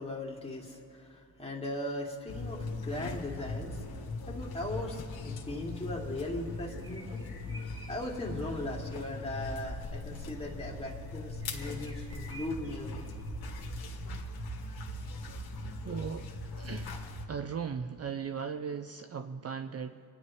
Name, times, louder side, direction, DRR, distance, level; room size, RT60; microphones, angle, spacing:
voice 1, 0.0-3.9 4.2-7.3 7.6-13.0, left 1 dB, 15° left, -2 dB, 2.6 m, -38 dB
sound 1, 2.3-17.3, left 2 dB, 75° left, 1.7 m, -40 dB
sound 2, 6.7-8.9 11.4-13.4, right 1 dB, 10° right, 3.2 m, -52 dB
voice 2, 15.8-20.0, right 6 dB, 40° right, 9 dB, 0.5 m, -38 dB
26.5 x 10.5 x 3.2 m, 2.5 s
cardioid pair, 85°, 37 cm